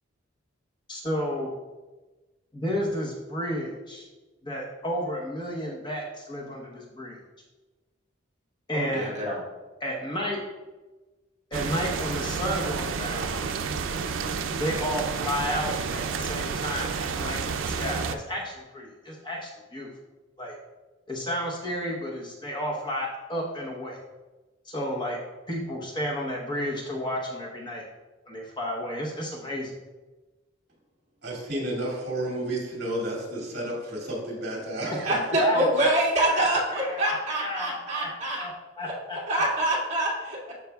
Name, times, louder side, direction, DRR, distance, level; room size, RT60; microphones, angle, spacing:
voice 1, 0.9-1.5 2.5-4.0 4.4-7.2 8.7-9.3 9.8-10.4 11.5-13.4 14.6-19.9 20.4-20.6 21.1-24.0 24.6-25.2 25.5-27.8 28.3-29.7 35.4-35.6 35.9-38.1 38.4-39.2, equal, 25° left, -2 dB, 0.9 m, -32 dB
voice 2, 8.7-9.4 35.0-38.4 39.3-40.5, right 1 dB, 35° right, -5 dB, 1.9 m, -25 dB
sound 1, 11.5-18.1, right 5 dB, 80° right, 0.5 m, -30 dB
voice 3, 31.2-35.1 35.5-35.7, right 1 dB, 55° right, -3 dB, 2.4 m, -31 dB
12.5 x 4.8 x 2.3 m, 1.2 s
head